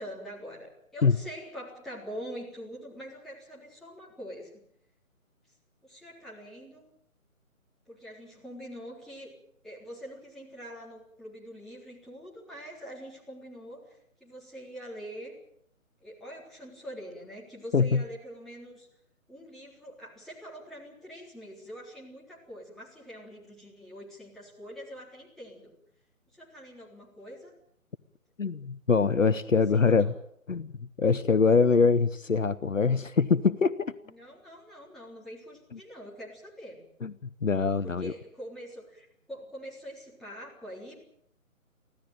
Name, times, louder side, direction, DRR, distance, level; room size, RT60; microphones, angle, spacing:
voice 1, 0.0-4.6 5.8-6.8 7.9-9.3 9.6-15.3 16.0-18.9 19.3-25.7 26.3-27.5 29.7-30.1 34.0-36.9 37.8-41.0, equal, ahead, -7 dB, 3.8 m, -44 dB
voice 2, 17.7-18.0 28.4-30.1 30.5-33.7 35.7-35.8 37.0-37.1 37.4-38.1, left 5 dB, 65° left, 15 dB, 0.9 m, -24 dB
25.0 x 16.0 x 9.0 m, 0.69 s
figure-of-eight pair, 145°, 42 cm